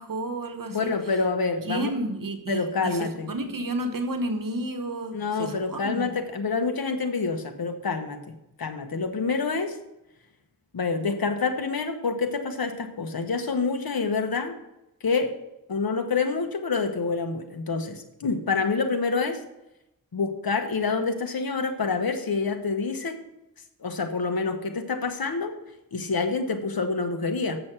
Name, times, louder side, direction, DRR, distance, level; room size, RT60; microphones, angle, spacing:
voice 1, 0.0-0.9 1.6-6.1, right 1 dB, 65° right, 6 dB, 1.1 m, -31 dB
voice 2, 0.7-1.9 2.5-3.3 5.1-9.8 10.7-14.5 15.0-15.4 15.7-19.4 20.1-23.2 23.8-25.5 25.9-27.6, left 4 dB, 80° left, 6 dB, 1.2 m, -27 dB
7.9 x 6.3 x 6.0 m, 0.91 s
wide cardioid pair, 65°, 36 cm